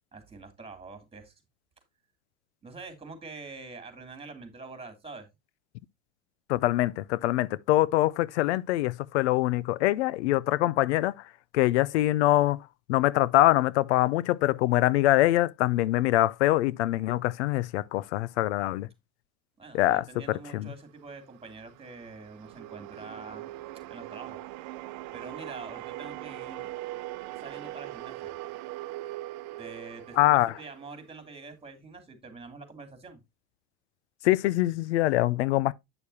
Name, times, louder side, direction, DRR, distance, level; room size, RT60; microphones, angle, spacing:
voice 1, 0.1-1.3 2.6-5.3 19.6-23.4 23.9-24.4 25.1-26.7 27.3-28.4 29.6-33.2, right 3 dB, 15° right, 2.7 m, -45 dB
voice 2, 6.5-11.1 11.5-12.6 12.9-18.9 19.7-20.0 20.5-20.7 30.2-30.5 34.2-35.7, left 16 dB, 85° left, 0.5 m, -24 dB
sound 1, 21.0-31.4, right 17 dB, 60° right, 0.8 m, -41 dB
8.8 x 6.5 x 2.7 m
supercardioid pair, 95°, 33 cm